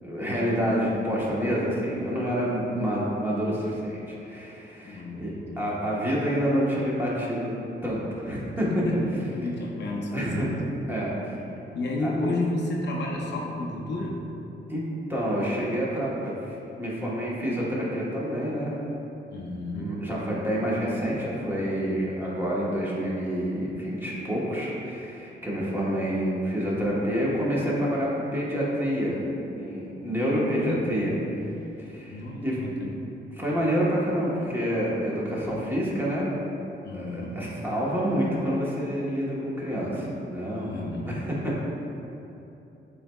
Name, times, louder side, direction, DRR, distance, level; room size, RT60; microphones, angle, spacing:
voice 1, 0.0-7.5 7.8-8.7 8.9-9.0 10.1-10.5 10.9-11.4 12.0-12.1 14.7-14.8 15.1-18.7 19.8-29.2 29.5-31.1 31.8-32.6 33.3-36.2 36.9-41.6, equal, 10° right, -6 dB, 1.0 m, -28 dB
voice 2, 4.8-5.6 8.8-9.0 9.3-10.6 11.6-14.2 19.3-19.9 30.6-31.2 32.1-32.9 36.8-37.4 40.6-41.3, left 2 dB, 65° left, -2 dB, 0.6 m, -31 dB
7.5 x 3.2 x 2.2 m, 2.9 s
cardioid pair, 115°, 20 cm